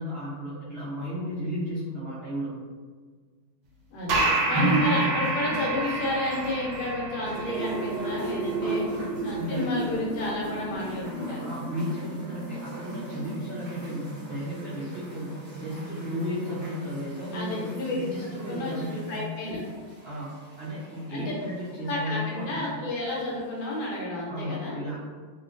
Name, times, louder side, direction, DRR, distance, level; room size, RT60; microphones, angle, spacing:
voice 1, 0.0-2.5 4.5-4.8 7.3-7.6 8.6-9.8 11.4-19.1 20.0-22.8 24.3-24.9, equal, 90° right, -9 dB, 0.5 m, -34 dB
voice 2, 3.9-8.8 9.2-11.5 17.3-18.0 18.5-19.6 21.1-21.2 21.8-24.8, left 1 dB, 70° left, -5 dB, 1.3 m, -31 dB
sound 1, 4.1-11.1, right 2 dB, 70° right, 1.0 m, -31 dB
sound 2, 4.5-6.9 7.2-21.9 22.8-22.9, right 1 dB, 25° right, 0.5 m, -35 dB
3.0 x 2.8 x 2.4 m, 1.5 s
omnidirectional pair, 2.0 m